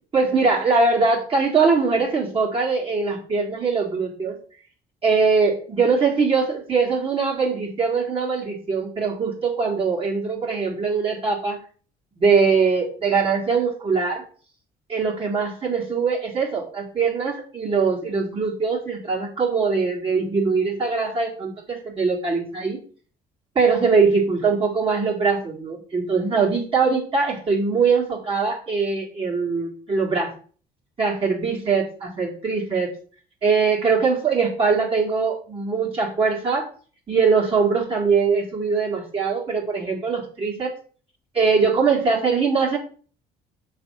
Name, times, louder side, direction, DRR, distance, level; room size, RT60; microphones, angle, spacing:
voice 1, 0.1-4.4 5.0-11.6 12.2-14.2 14.9-22.8 23.6-30.3 31.0-32.9 33.4-36.7 37.1-40.7 41.3-42.8, right 4 dB, 35° right, -4 dB, 2.1 m, -22 dB
6.1 x 3.4 x 5.5 m, 0.41 s
cardioid pair, 110°, 17 cm